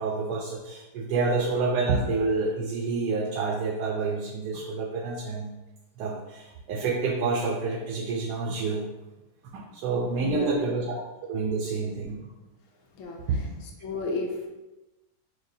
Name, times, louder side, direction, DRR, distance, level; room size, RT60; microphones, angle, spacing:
voice 1, 0.0-5.5 6.0-8.8 9.5-11.0 11.3-12.2 13.3-13.5, right 4 dB, 90° right, -1 dB, 1.2 m, -28 dB
voice 2, 10.2-10.7 12.9-13.2 13.8-14.5, left 3 dB, 65° left, 0 dB, 0.8 m, -32 dB
6.2 x 2.1 x 2.7 m, 1.0 s
omnidirectional pair, 1.7 m